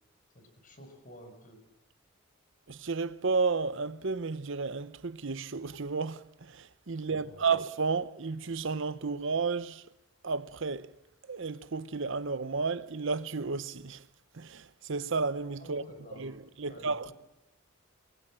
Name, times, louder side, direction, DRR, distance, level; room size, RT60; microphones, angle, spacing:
voice 1, 0.3-1.6 7.0-7.5 15.6-16.3 16.6-16.9, equal, 40° left, 5.8 m, -51 dB
voice 2, 2.7-9.8 10.2-10.9 11.3-14.0 14.3-15.8 16.2-17.1, right 4 dB, 60° right, 0.8 m, -32 dB
27.0 x 20.0 x 7.6 m
head